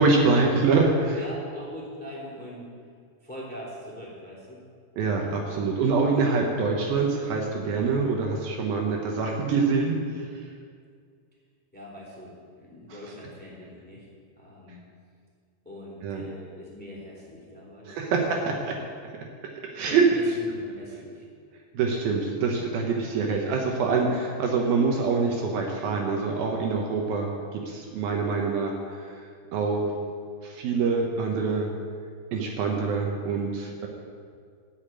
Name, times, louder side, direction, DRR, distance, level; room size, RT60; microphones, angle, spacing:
voice 1, 0.0-1.2 5.0-10.3 16.0-16.2 17.9-18.7 19.7-20.1 21.7-29.1 29.5-30.0 30.4-31.7 32.3-33.9, right 4 dB, 70° right, 1 dB, 2.7 m, -25 dB
voice 2, 1.1-2.7 3.2-4.6 11.7-14.1 14.4-14.8 15.6-18.7 19.9-21.2, left 1 dB, 5° left, -6 dB, 2.2 m, -42 dB
13.0 x 5.8 x 8.8 m, 2.1 s
omnidirectional pair, 4.7 m